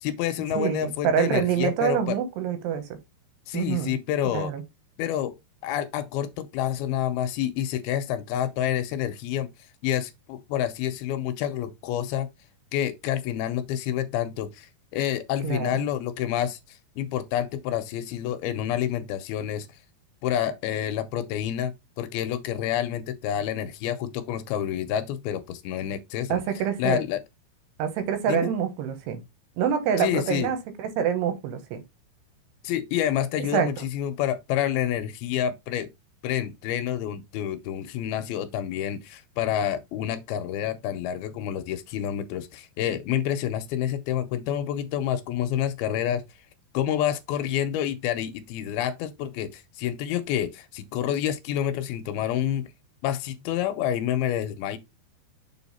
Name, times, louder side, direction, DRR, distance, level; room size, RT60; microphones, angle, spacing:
voice 1, 0.0-2.2 3.5-4.5 5.0-5.3 5.6-9.5 9.8-12.3 12.7-19.7 20.2-26.4 26.8-27.2 28.3-28.5 30.0-30.5 32.6-35.9 36.2-46.2 46.7-52.7 53.0-54.8, left 10 dB, 80° left, 2.4 m, -28 dB
voice 2, 0.5-3.0 3.5-4.0 4.2-4.6 15.4-15.9 26.3-27.0 27.8-29.2 29.6-31.8 33.5-33.9, right 8 dB, 90° right, 3.4 m, -26 dB
6.9 x 3.8 x 4.2 m
omnidirectional pair, 4.6 m